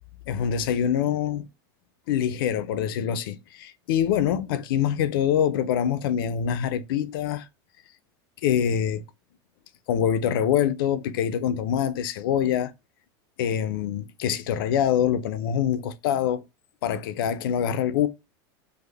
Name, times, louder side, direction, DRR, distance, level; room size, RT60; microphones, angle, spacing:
voice 1, 0.3-1.5 2.1-7.5 8.4-9.0 9.9-12.7 13.4-16.4 16.8-18.1, left 9 dB, 75° left, 0.4 m, -25 dB
3.4 x 2.0 x 3.3 m
supercardioid pair, 175°, 12 cm